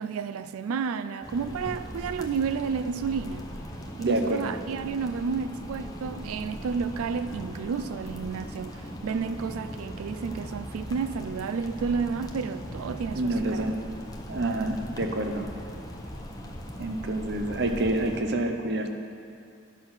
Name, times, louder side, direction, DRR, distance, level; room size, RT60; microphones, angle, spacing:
voice 1, 0.0-3.5 4.0-13.6, right 5 dB, 75° right, 11 dB, 0.3 m, -31 dB
sound 1, 1.2-18.2, equal, 15° left, 0.6 m, -39 dB
voice 2, 4.0-4.5 13.1-13.9 14.3-15.5 16.8-18.9, right 2 dB, 50° right, 5 dB, 0.7 m, -28 dB
10.5 x 5.6 x 6.2 m, 2.5 s
head